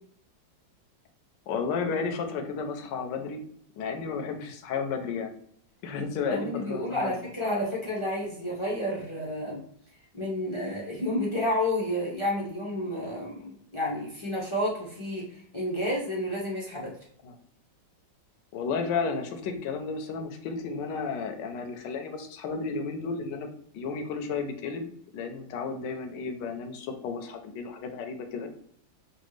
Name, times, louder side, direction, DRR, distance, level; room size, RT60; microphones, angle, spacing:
voice 1, 1.5-3.4 3.8-5.3 5.8-7.1 17.2-17.3 18.5-23.5 23.7-28.5, left 5 dB, 75° left, 5 dB, 1.3 m, -33 dB
voice 2, 6.3-9.6 10.1-16.9, left 1 dB, 35° left, -4 dB, 0.4 m, -30 dB
6.0 x 2.4 x 3.2 m, 0.66 s
omnidirectional pair, 2.1 m